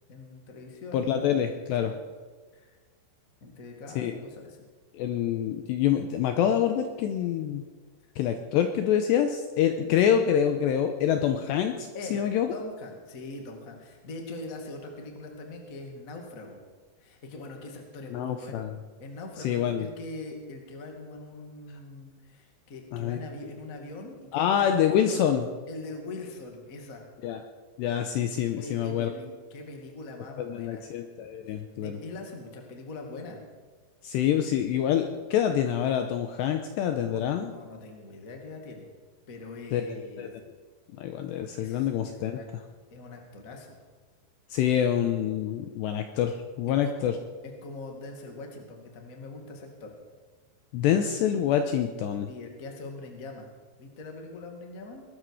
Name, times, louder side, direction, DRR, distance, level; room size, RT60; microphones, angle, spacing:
voice 1, 0.1-1.2 1.8-1.9 2.5-2.7 3.4-4.7 9.8-9.9 11.9-12.2 12.5-16.6 17.0-18.7 19.0-25.4 25.7-27.0 28.5-30.9 31.5-33.4 36.9-38.9 39.3-40.3 41.5-42.5 42.9-43.8 44.5-44.6 46.8-47.2 47.6-49.9 52.3-53.5 53.8-55.0, left 2 dB, 50° left, 2 dB, 0.9 m, -42 dB
voice 2, 0.9-1.9 4.0-4.1 4.9-7.6 8.2-12.5 18.1-18.7 19.4-19.9 22.9-23.2 24.3-25.5 27.2-27.4 27.8-29.1 30.4-32.0 34.0-37.5 39.7-39.8 40.2-40.3 41.0-42.4 44.5-47.2 50.7-52.3, left 9 dB, 85° left, 7 dB, 2.5 m, -26 dB
21.0 x 13.0 x 4.9 m, 1.4 s
omnidirectional pair, 5.8 m